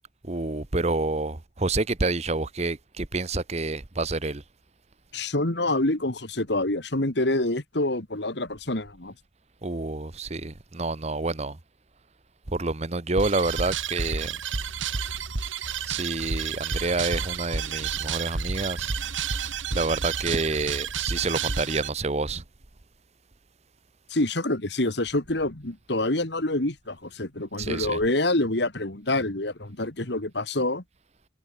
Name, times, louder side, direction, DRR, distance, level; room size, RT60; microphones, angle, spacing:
voice 1, 0.3-4.4 9.6-11.6 12.5-14.3 15.9-18.9 19.7-22.4 27.6-28.0, right 3 dB, 35° right, 1.0 m, -28 dB
voice 2, 5.1-9.1 24.1-30.8, left 2 dB, 60° left, 2.3 m, -26 dB
sound 1, 13.2-21.9, right 6 dB, 90° right, 1.9 m, -30 dB
head